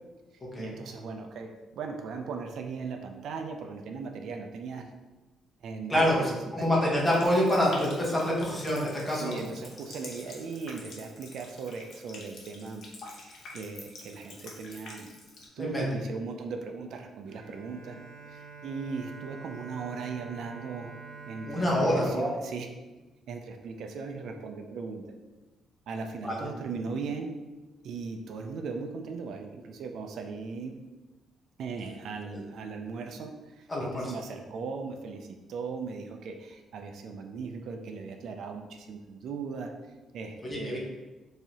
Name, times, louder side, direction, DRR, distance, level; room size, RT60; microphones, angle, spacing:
voice 1, 0.6-4.9 5.6-6.3 9.1-12.8 13.1-15.1 15.6-18.0 18.3-20.9 21.3-22.7 23.3-25.0 25.9-27.3 27.8-30.8 31.6-39.7 40.1-40.8, right 5 dB, 60° right, 4 dB, 0.4 m, -38 dB
voice 2, 5.9-6.2 6.5-9.4 15.6-15.9 21.5-22.3 26.2-26.4 33.7-34.1 40.4-40.8, left 1 dB, 20° left, -3 dB, 0.9 m, -26 dB
Water tap faucet, 7.0-15.5, left 2 dB, 60° left, 0.8 m, -47 dB
Bowed string instrument, 17.3-23.3, right 4 dB, 80° right, 0.9 m, -47 dB
4.7 x 2.7 x 2.8 m, 1.2 s
cardioid pair, 160°, 0 cm